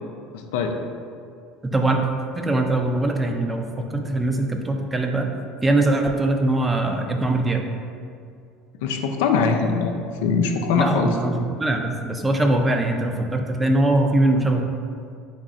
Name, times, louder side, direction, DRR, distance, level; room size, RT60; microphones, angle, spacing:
voice 1, 0.3-0.8 8.8-11.1, left 5 dB, 80° left, 4 dB, 0.4 m, -22 dB
voice 2, 1.6-2.0 2.3-5.3 5.6-7.6 10.7-14.7, right 2 dB, 15° right, 3 dB, 0.5 m, -22 dB
3.6 x 3.1 x 3.9 m, 2.3 s
supercardioid pair, 90°, 0 cm